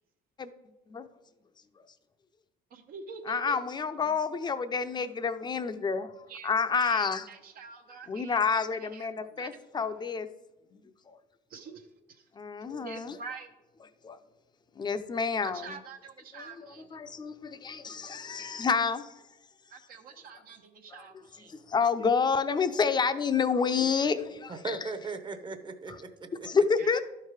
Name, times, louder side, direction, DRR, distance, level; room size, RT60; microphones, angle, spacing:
voice 1, 2.7-3.6 6.3-6.5 6.8-8.4 8.7-9.1 9.4-9.5 9.9-10.0 11.5-12.2 12.8-13.5 15.4-17.0 19.7-21.5 26.8-27.0, right 5 dB, 60° right, 4 dB, 0.8 m, -46 dB
voice 2, 3.3-6.1 6.4-7.3 8.1-10.3 10.7-10.8 11.1-11.2 12.4-13.2 14.0-14.2 14.8-15.8 16.3-19.1 20.9-21.0 21.5-24.8 26.4-27.0, left 5 dB, 25° left, 10 dB, 0.6 m, -29 dB
voice 3, 24.5-26.5, right 3 dB, 30° right, 10 dB, 0.9 m, -38 dB
12.0 x 4.7 x 4.9 m, 0.98 s
cardioid pair, 110°, 17 cm